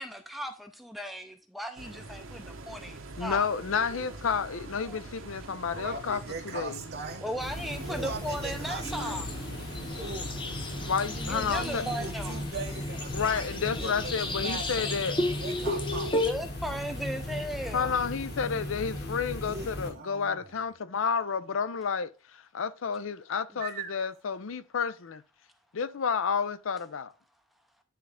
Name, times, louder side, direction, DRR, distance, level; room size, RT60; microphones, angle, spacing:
voice 1, 0.0-3.5 4.8-5.0 7.2-9.3 10.0-10.1 11.2-12.3 16.2-17.9, equal, ahead, 0.5 m, -37 dB
sound 1, 1.8-12.1, right 3 dB, 75° right, 0.9 m, -44 dB
voice 2, 3.2-6.2 6.5-6.8 10.8-11.8 13.1-15.2 17.7-25.2 25.7-27.1, left 6 dB, 75° left, 0.5 m, -30 dB
voice 3, 5.7-7.2 7.9-9.2 9.9-10.4 11.5-16.2 19.5-20.5 23.6-24.1, right 4 dB, 50° right, 0.7 m, -40 dB
sound 2, 7.4-19.9, left 1 dB, 55° left, 1.8 m, -37 dB
sound 3, 8.8-16.3, left 1 dB, 25° left, 0.8 m, -34 dB
9.3 x 3.8 x 3.4 m
head